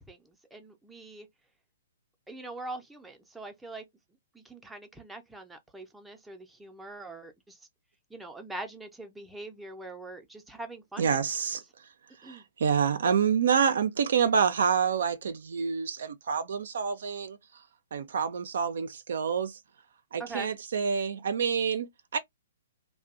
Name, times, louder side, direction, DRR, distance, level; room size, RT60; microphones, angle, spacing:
voice 1, 0.1-1.3 2.3-3.8 4.3-7.6 8.1-11.2 12.2-12.4 20.2-20.5, right 2 dB, 5° right, 0.5 m, -43 dB
voice 2, 11.0-11.6 12.2-17.4 17.9-19.6 20.1-22.2, right 7 dB, 60° right, 0.3 m, -27 dB
2.5 x 2.1 x 2.4 m
figure-of-eight pair, 120°, 0 cm